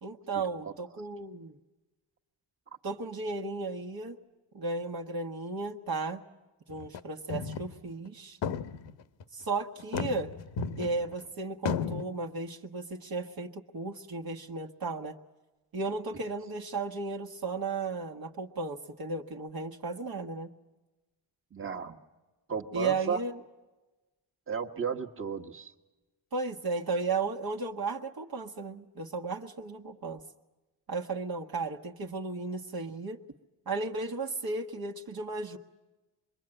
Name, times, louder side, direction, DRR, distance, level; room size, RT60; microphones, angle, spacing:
voice 1, 0.0-1.6 2.8-4.2 4.5-6.2 6.7-8.4 9.3-10.3 10.8-15.2 15.7-20.5 22.7-23.4 26.3-30.2 30.9-33.2 33.7-35.6, right 3 dB, 45° right, 1 dB, 1.5 m, -35 dB
sound 1, 6.7-7.0 7.3-7.7 8.1-8.2 8.4-9.2 9.8-11.2 11.7-12.0, left 6 dB, 65° left, 1.2 m, -34 dB
voice 2, 21.5-22.0 22.5-23.2 24.5-25.7, right 6 dB, 25° right, 4 dB, 1.5 m, -33 dB
26.5 x 22.0 x 9.0 m, 1.1 s
cardioid pair, 120°, 48 cm